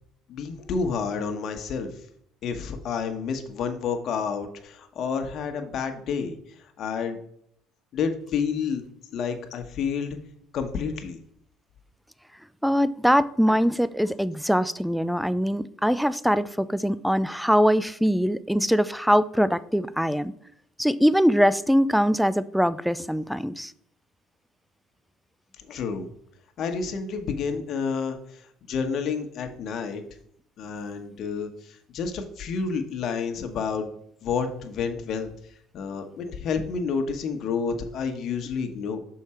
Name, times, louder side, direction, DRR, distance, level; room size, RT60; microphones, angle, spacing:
voice 1, 0.3-1.9 2.4-6.4 6.8-7.2 7.9-8.8 9.1-10.2 10.5-11.2 25.7-26.1 26.6-28.2 28.7-30.0 30.6-31.5 31.9-33.9 34.2-35.3 35.7-39.0, left 5 dB, 55° left, 6 dB, 1.2 m, -29 dB
voice 2, 12.6-20.3 20.8-23.7, equal, ahead, 16 dB, 0.3 m, -22 dB
6.4 x 4.8 x 4.3 m, 0.69 s
supercardioid pair, 90°, 0 cm